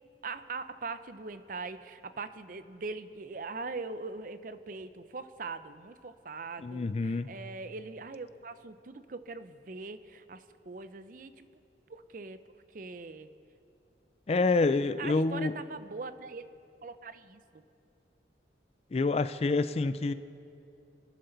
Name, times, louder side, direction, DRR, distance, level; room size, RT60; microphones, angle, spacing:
voice 1, 0.2-11.5 11.9-12.4 12.7-13.3 14.7-16.4 16.8-17.6, right 3 dB, 50° right, 12 dB, 0.6 m, -41 dB
voice 2, 6.6-7.3 14.3-15.5 18.9-20.1, left 3 dB, 35° left, 13 dB, 0.3 m, -27 dB
25.5 x 10.5 x 4.0 m, 2.6 s
head